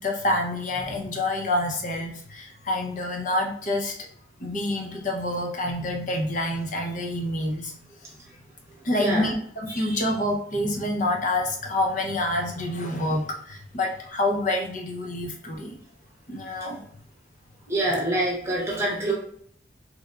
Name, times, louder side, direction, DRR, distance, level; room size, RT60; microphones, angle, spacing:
voice 1, 0.0-3.9 4.4-7.7 8.8-15.8 16.3-16.8, left 1 dB, 40° left, 1 dB, 0.6 m, -27 dB
voice 2, 9.7-10.0 17.7-19.1, right 1 dB, 15° right, -3 dB, 0.8 m, -26 dB
3.3 x 3.3 x 2.3 m, 0.62 s
head